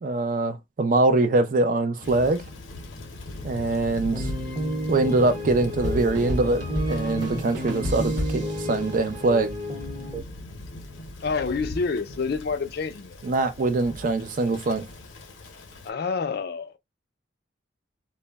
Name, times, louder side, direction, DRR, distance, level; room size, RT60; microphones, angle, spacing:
voice 1, 0.0-2.4 3.4-4.3 4.9-9.5 13.2-14.8, right 2 dB, 45° right, 0.4 m, -23 dB
Thunder / Rain, 2.0-15.9, left 1 dB, 85° left, 0.7 m, -39 dB
sound 1, 3.8-10.2, equal, 25° right, 0.7 m, -32 dB
sound 2, 5.8-9.4, left 1 dB, 65° right, 0.8 m, -32 dB
voice 2, 11.2-13.2 15.8-16.7, left 4 dB, 55° left, 0.4 m, -28 dB
2.1 x 2.0 x 3.3 m
head